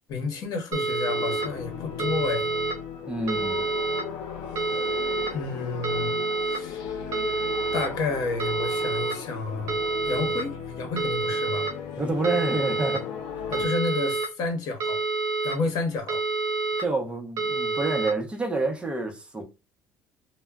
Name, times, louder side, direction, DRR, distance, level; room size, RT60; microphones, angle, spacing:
voice 1, 0.1-2.5 5.3-6.2 6.5-7.1 7.7-9.8 10.1-11.7 13.5-15.0 15.4-16.2, left 3 dB, 60° left, 0.8 m, -30 dB
sound 1, 0.7-1.4 2.0-2.7 3.3-4.0 4.6-5.3 5.8-6.6 7.1-7.8 8.4-9.1 9.7-10.4 11.0-11.7 12.2-13.0 13.5-14.3 14.8-15.5 16.1-16.8 17.4-18.1, right 3 dB, 55° right, 0.9 m, -27 dB
sound 2, 1.0-13.7, left 7 dB, 80° left, 0.5 m, -37 dB
voice 2, 3.1-3.7 12.0-13.1 16.8-19.4, right 2 dB, 15° right, 0.6 m, -28 dB
2.1 x 2.0 x 3.4 m
cardioid pair, 140°, 7 cm